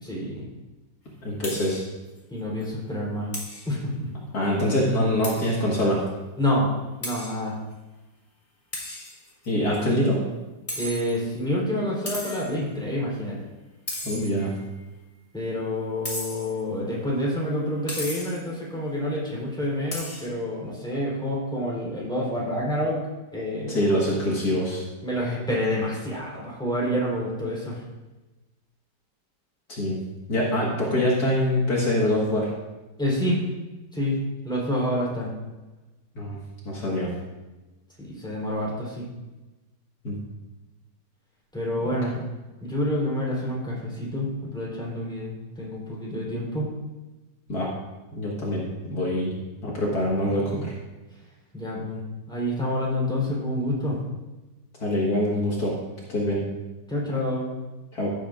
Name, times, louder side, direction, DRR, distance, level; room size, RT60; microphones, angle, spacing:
voice 1, 0.0-0.5 2.3-3.3 3.7-4.1 6.4-6.7 7.0-7.5 10.7-13.4 15.3-23.0 23.3-24.0 25.0-27.8 33.0-33.4 33.9-35.3 38.0-39.0 41.5-42.2 42.6-46.7 51.5-52.0 52.3-54.0 56.9-57.5, left 1 dB, ahead, -6 dB, 3.6 m, -28 dB
voice 2, 1.2-1.8 4.3-6.0 9.5-10.2 14.0-14.5 23.7-24.8 29.7-30.0 30.3-32.5 36.2-36.4 36.6-37.1 40.0-40.2 41.8-41.9 47.5-47.7 48.1-49.3 49.6-50.7 54.8-55.7 56.1-56.4 57.9-58.1, left 1 dB, 60° left, -4 dB, 2.2 m, -24 dB
sound 1, 1.4-1.8 2.2-2.3 2.6-2.7 3.3-3.7 5.2-5.6 6.1-6.2 7.0-7.4 8.7-9.5 10.7-11.4 12.1-12.6 13.9-14.6 16.0-16.6 17.9-18.5 19.9-20.3, left 1 dB, 20° left, 2.0 m, -35 dB
15.5 x 7.8 x 2.5 m, 1.1 s
omnidirectional pair, 1.9 m